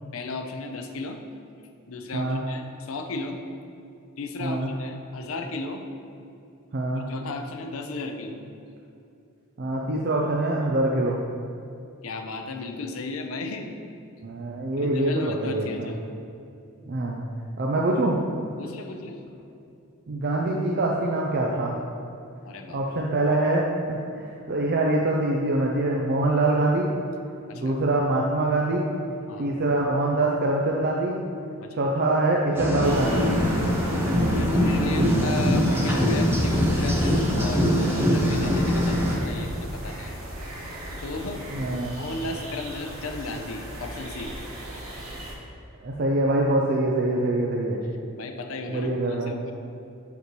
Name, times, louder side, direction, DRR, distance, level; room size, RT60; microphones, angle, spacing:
voice 1, 0.1-1.2 1.9-3.4 4.2-5.8 7.1-8.4 12.0-13.7 14.8-16.0 18.6-19.2 22.4-22.8 27.5-27.8 29.3-29.5 31.6-31.8 34.2-40.2 40.9-41.4 41.9-44.4 48.1-49.5, left 3 dB, 65° left, 5 dB, 0.6 m, -34 dB
voice 2, 4.4-4.7 6.7-7.1 9.6-11.2 14.2-15.9 16.9-17.2 17.6-18.2 20.1-21.8 22.7-26.9 27.5-28.9 29.4-31.2 31.7-33.3 41.5-42.0 45.8-47.8 48.7-49.3, right 2 dB, 50° right, -1 dB, 0.5 m, -24 dB
sound 1, 32.5-39.2, equal, 10° right, 0.7 m, -23 dB
sound 2, 32.8-45.3, right 1 dB, 70° right, 1.1 m, -36 dB
6.7 x 5.1 x 3.1 m, 2.6 s
head